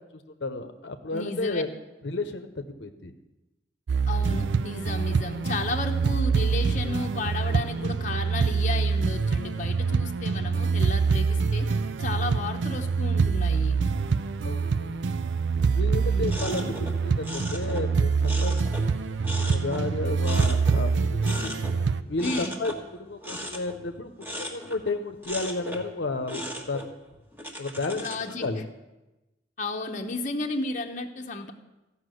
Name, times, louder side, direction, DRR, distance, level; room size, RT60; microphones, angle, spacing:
voice 1, 0.4-1.7 2.0-3.1 14.4-15.0 15.7-21.6 22.1-22.7 23.0-26.8 27.6-28.0 28.4-28.6, left 2 dB, 70° left, 6 dB, 0.8 m, -32 dB
voice 2, 1.1-1.6 4.1-11.7 12.0-13.8 16.0-16.4 22.2-22.6 28.0-28.5 29.6-31.5, left 3 dB, 45° left, 3 dB, 0.9 m, -33 dB
sound 1, 3.9-22.0, right 5 dB, 85° right, 0.5 m, -25 dB
sound 2, 16.2-19.0 19.2-21.0 21.2-21.8 22.2-25.0 25.2-25.9 26.3-28.6, equal, 10° right, 1.4 m, -38 dB
14.5 x 5.8 x 7.7 m, 1.0 s
head